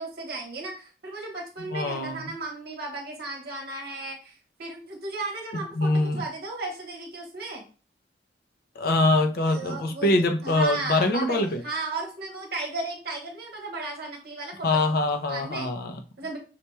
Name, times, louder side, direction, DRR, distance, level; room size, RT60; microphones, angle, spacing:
voice 1, 0.0-7.6 9.2-15.0 15.3-15.7 16.2-16.4, right 2 dB, 60° right, 0.9 m, -35 dB
voice 2, 1.7-2.3 5.8-6.2 8.8-11.6 14.6-16.0, left 2 dB, 60° left, 0.5 m, -24 dB
5.7 x 2.2 x 3.0 m
head